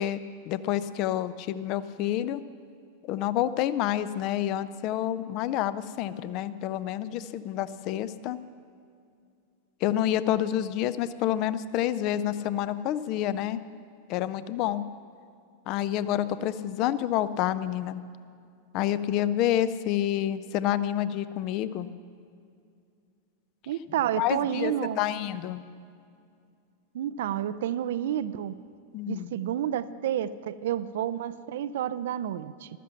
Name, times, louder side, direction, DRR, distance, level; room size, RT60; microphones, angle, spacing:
voice 1, 0.0-2.4 3.0-8.4 9.8-13.6 14.1-14.8 15.7-18.0 18.7-21.9 24.2-25.6 28.9-29.3, left 12 dB, 40° left, 15 dB, 0.5 m, -28 dB
voice 2, 23.7-25.0 26.9-28.6 29.1-32.7, right 10 dB, 55° right, 15 dB, 0.4 m, -30 dB
14.5 x 13.0 x 5.8 m, 2.4 s
figure-of-eight pair, 90°, 0 cm